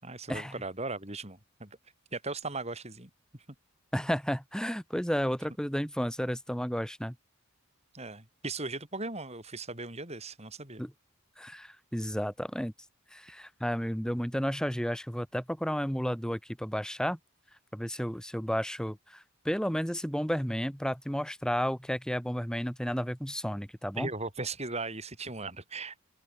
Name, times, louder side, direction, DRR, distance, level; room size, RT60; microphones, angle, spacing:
voice 1, 0.0-1.8 2.1-3.1 7.9-10.8 23.9-26.0, right 3 dB, 30° right, 6.5 m, -38 dB
voice 2, 3.9-7.1 10.8-10.9 11.4-12.7 13.1-17.2 17.7-24.1, equal, 5° left, 4.7 m, -32 dB
open air
head